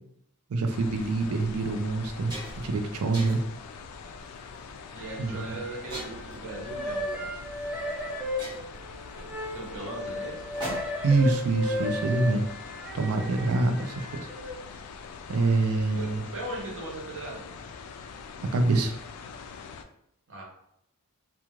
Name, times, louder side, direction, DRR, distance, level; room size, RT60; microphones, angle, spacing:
voice 1, 0.5-3.4 5.2-5.6 11.0-12.4 12.9-14.1 15.3-16.2 18.4-18.9, right 3 dB, 75° right, 6 dB, 0.4 m, -25 dB
sound 1, 0.7-19.8, left 5 dB, 85° left, 0.3 m, -43 dB
sound 2, 0.9-1.0 1.6-1.7 2.0-2.7 3.1-3.6 4.3-4.6 5.9-6.4 7.6-7.7 8.0-8.1 8.4-11.2, right 1 dB, 20° right, 0.8 m, -41 dB
voice 2, 4.9-7.4 9.5-10.4 15.9-17.5 20.3-20.4, right 2 dB, 55° right, -2 dB, 0.9 m, -38 dB
sound 3, 5.0-6.2 6.5-14.5, left 1 dB, 5° right, 0.3 m, -35 dB
2.4 x 2.3 x 3.0 m, 0.76 s
head